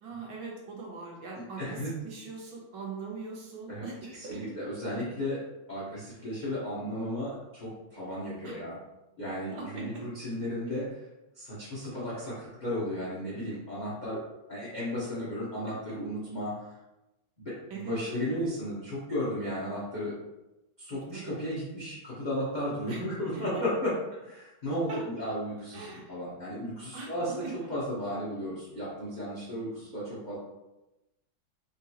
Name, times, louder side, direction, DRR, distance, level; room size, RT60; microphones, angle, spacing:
voice 1, 0.0-4.5 8.4-8.6 9.5-10.0 15.7-15.8 17.7-18.4 20.9-21.4 22.9-23.0 23.5-23.6 24.9-25.0 25.7-26.1 26.9-27.1 27.4-27.7, right 4 dB, 70° right, -2 dB, 1.2 m, -41 dB
voice 2, 1.6-1.9 3.7-3.8 4.2-5.4 5.7-8.8 9.2-11.0 11.4-14.2 14.5-16.6 17.4-20.2 20.8-23.9 24.2-30.4, equal, 80° left, -8 dB, 0.4 m, -34 dB
3.8 x 2.3 x 2.7 m, 0.96 s
omnidirectional pair, 2.2 m